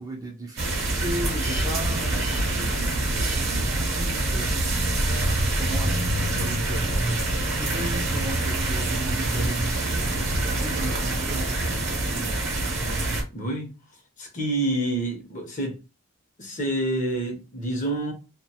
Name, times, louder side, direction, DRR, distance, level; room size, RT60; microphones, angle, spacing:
voice 1, 0.0-12.2, right 1 dB, 15° right, 0.4 m, -37 dB
sound 1, 0.6-13.2, right 2 dB, 55° right, 0.8 m, -25 dB
voice 2, 13.3-13.7 14.2-15.8 16.4-18.1, right 1 dB, 35° left, 0.7 m, -27 dB
2.4 x 2.1 x 2.7 m
head